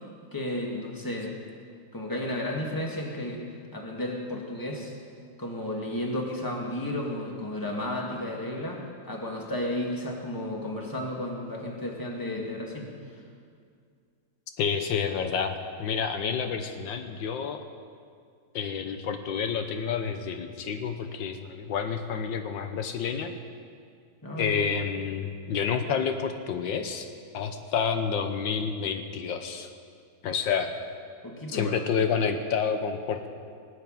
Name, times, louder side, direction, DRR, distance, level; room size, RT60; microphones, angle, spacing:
voice 1, 0.3-1.4 1.9-3.4 3.7-4.9 5.4-12.9 24.2-24.6 31.2-31.8, left 1 dB, 10° left, -1 dB, 2.1 m, -33 dB
voice 2, 14.6-17.6 18.5-23.3 24.4-27.1 27.3-29.7 30.2-30.7 31.5-33.3, left 6 dB, 80° left, 7 dB, 1.6 m, -29 dB
18.5 x 8.3 x 9.1 m, 2.2 s
omnidirectional pair, 2.0 m